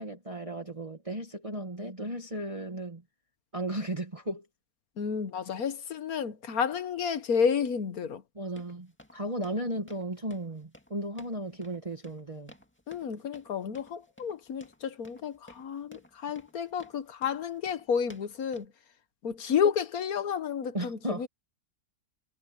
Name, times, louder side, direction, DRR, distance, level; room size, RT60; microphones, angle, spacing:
voice 1, 0.0-3.0 3.5-4.4 8.3-12.5 20.7-21.3, right 1 dB, 20° right, 1.7 m, -35 dB
voice 2, 5.0-8.2 12.9-18.7 19.2-21.3, left 7 dB, 65° left, 1.5 m, -31 dB
sound 1, 8.6-18.7, equal, 5° left, 2.1 m, -56 dB
omnidirectional pair, 1.7 m